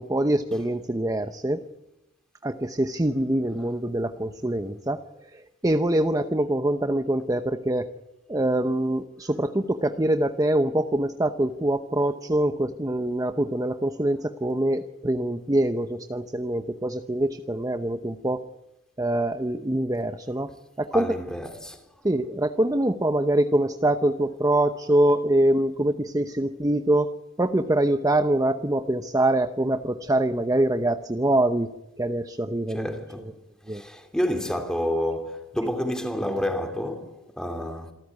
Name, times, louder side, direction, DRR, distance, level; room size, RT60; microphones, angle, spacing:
voice 1, 0.0-1.6 2.4-5.0 5.6-7.9 8.3-18.4 19.0-20.5 20.8-21.1 22.0-27.1 27.4-31.7 32.0-32.9 33.7-33.8, right 1 dB, 15° right, 0.8 m, -24 dB
voice 2, 20.9-21.8 32.7-33.3 33.7-37.9, left 1 dB, 5° left, 3.1 m, -29 dB
27.5 x 14.0 x 9.5 m
head